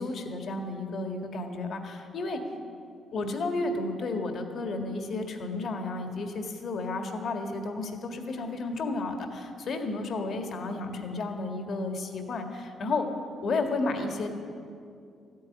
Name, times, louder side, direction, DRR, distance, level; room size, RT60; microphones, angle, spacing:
voice 1, 0.0-2.4 3.1-13.0 13.4-14.3, left 3 dB, 60° left, 4 dB, 1.8 m, -32 dB
14.0 x 9.4 x 9.6 m, 2.4 s
cardioid pair, 90°, 0 cm